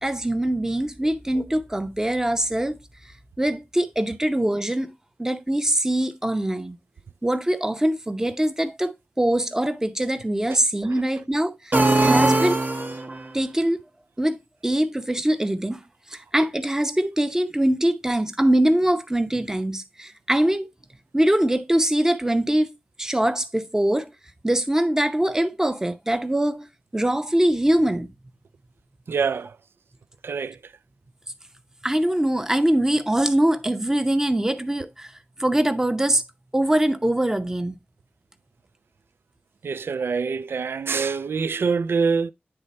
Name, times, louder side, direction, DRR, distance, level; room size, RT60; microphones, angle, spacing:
voice 1, 0.0-2.8 3.0-4.9 5.2-6.8 7.2-12.6 13.3-13.8 14.2-20.7 21.1-24.1 24.4-26.7 26.9-28.1 31.8-35.1 35.4-36.2 36.5-37.8, right 1 dB, 15° right, 0.7 m, -23 dB
sound 1, 11.7-13.3, right 2 dB, 50° right, 1.1 m, -20 dB
voice 2, 29.1-29.6 30.2-30.7 39.6-42.3, right 5 dB, 80° right, 0.3 m, -25 dB
9.9 x 3.3 x 4.1 m
wide cardioid pair, 90°, 4 cm